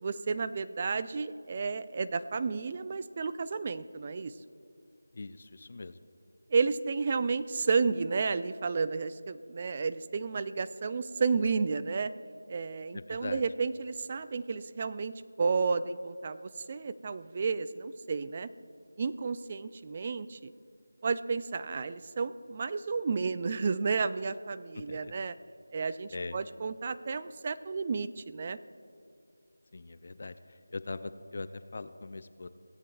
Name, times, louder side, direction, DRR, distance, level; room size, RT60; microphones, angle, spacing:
voice 1, 0.0-4.3 6.5-12.1 12.5-15.1 15.4-18.5 19.0-20.5 21.0-25.3 25.7-28.6, right 4 dB, 30° right, 13 dB, 0.3 m, -32 dB
voice 2, 5.1-6.0 12.9-13.4 24.7-25.1 26.1-26.4 29.7-32.5, left 3 dB, 40° left, 12 dB, 0.4 m, -41 dB
17.5 x 8.9 x 2.4 m, 2.6 s
figure-of-eight pair, 170°, 0 cm